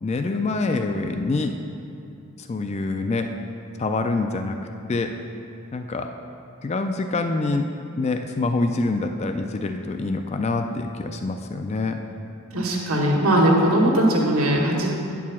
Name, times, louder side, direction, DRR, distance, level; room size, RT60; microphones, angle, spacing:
voice 1, 0.0-1.5 2.5-3.3 3.8-4.6 4.9-5.1 5.7-6.1 6.6-7.6 8.0-12.0, left 3 dB, 30° left, 6 dB, 0.3 m, -25 dB
voice 2, 12.5-14.9, right 1 dB, 85° right, -2 dB, 1.6 m, -19 dB
8.8 x 4.7 x 7.2 m, 2.6 s
head